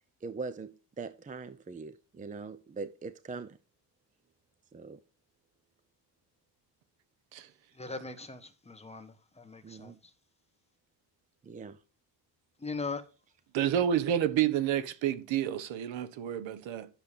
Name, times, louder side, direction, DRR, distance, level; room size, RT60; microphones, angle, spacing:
voice 1, 0.2-3.6 4.7-5.0 9.6-10.0 11.4-11.8, right 4 dB, 15° right, 0.6 m, -41 dB
voice 2, 7.7-10.1 12.6-13.0, left 4 dB, 15° left, 1.3 m, -40 dB
voice 3, 13.5-16.9, right 10 dB, 80° right, 1.4 m, -29 dB
10.5 x 7.1 x 5.0 m
cardioid pair, 130°, 45 cm